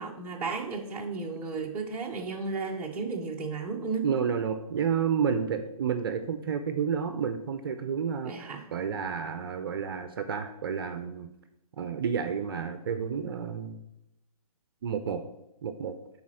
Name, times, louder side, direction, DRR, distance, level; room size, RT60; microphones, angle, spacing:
voice 1, 0.0-4.1 8.2-8.7, right 4 dB, 10° right, -3 dB, 0.7 m, -34 dB
voice 2, 4.0-11.3 11.8-13.8 14.8-15.2 15.6-15.9, right 7 dB, 40° right, 9 dB, 0.6 m, -30 dB
7.0 x 4.2 x 6.3 m, 0.89 s
hypercardioid pair, 155°, 19 cm